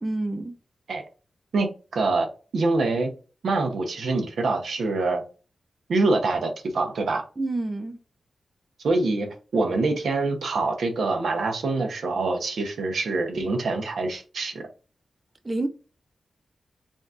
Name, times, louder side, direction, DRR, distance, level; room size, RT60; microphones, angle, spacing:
voice 1, 0.0-0.6 7.4-8.0 15.4-15.7, right 2 dB, 20° right, 0.4 m, -28 dB
voice 2, 1.9-2.3 2.5-3.1 3.4-5.2 5.9-7.2 8.8-14.7, right 3 dB, 75° right, 0.8 m, -25 dB
4.0 x 3.6 x 2.4 m
wide cardioid pair, 155°, 0 cm